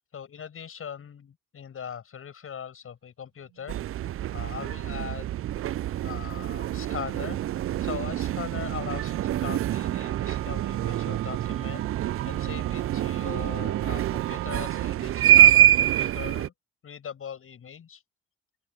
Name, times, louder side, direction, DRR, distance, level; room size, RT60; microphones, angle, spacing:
voice 1, 0.0-3.8 4.3-5.3 6.0-7.4 7.8-11.8 12.3-16.5 16.8-18.0, left 8 dB, 45° left, 7.5 m, -40 dB
Wind instrument woodwind instrument, 3.5-15.1, right 25 dB, 75° right, 3.6 m, -43 dB
sound 1, 3.7-16.5, right 12 dB, 45° right, 0.7 m, -25 dB
open air
hypercardioid pair, 50°, 30 cm